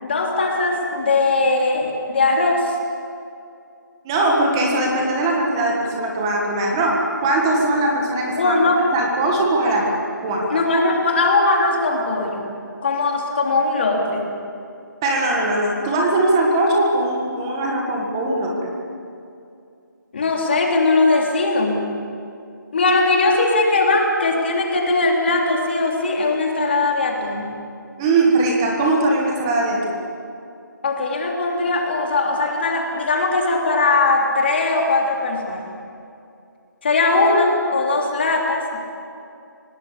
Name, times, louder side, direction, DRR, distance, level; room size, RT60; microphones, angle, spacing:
voice 1, 0.0-2.8 8.4-8.8 10.5-12.5 12.8-14.3 20.1-21.8 22.7-27.6 30.8-35.7 36.8-38.8, left 3 dB, 35° left, 0 dB, 3.3 m, -19 dB
voice 2, 4.0-10.6 15.0-18.7 28.0-30.0, right 2 dB, 10° right, -1 dB, 1.7 m, -20 dB
25.5 x 18.5 x 8.5 m, 2.5 s
figure-of-eight pair, 175°, 11 cm